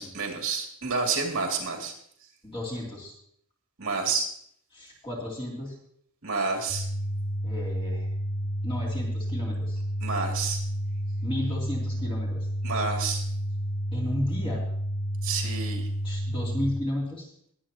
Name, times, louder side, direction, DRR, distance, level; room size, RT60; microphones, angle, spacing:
voice 1, 0.0-1.9 3.8-4.3 6.2-6.9 10.0-10.6 12.6-13.2 15.2-15.9, right 4 dB, 60° right, 1 dB, 2.6 m, -29 dB
voice 2, 2.4-3.1 4.7-5.7 7.4-8.1 8.6-9.8 11.2-12.5 13.9-14.6 16.0-17.3, left 1 dB, 25° left, -4 dB, 3.0 m, -33 dB
sound 1, 6.7-16.7, equal, 50° left, 2.8 m, -30 dB
21.0 x 8.6 x 2.9 m, 0.66 s
head